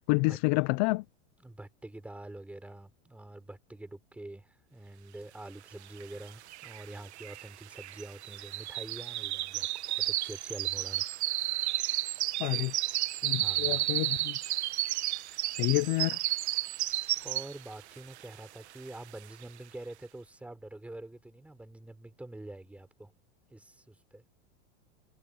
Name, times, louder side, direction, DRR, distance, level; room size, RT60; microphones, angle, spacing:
voice 1, 0.1-1.0 12.4-12.7 13.2-14.4 15.6-16.2, left 27 dB, 35° left, 0.4 m, -28 dB
voice 2, 1.4-11.0 13.4-13.8 17.2-23.1 23.5-24.2, right 1 dB, 5° right, 4.4 m, -46 dB
sound 1, 6.0-6.1 6.3-17.7 18.1-18.4 18.9-19.0, right 15 dB, 85° right, 1.4 m, -32 dB
supercardioid pair, 150°, 33 cm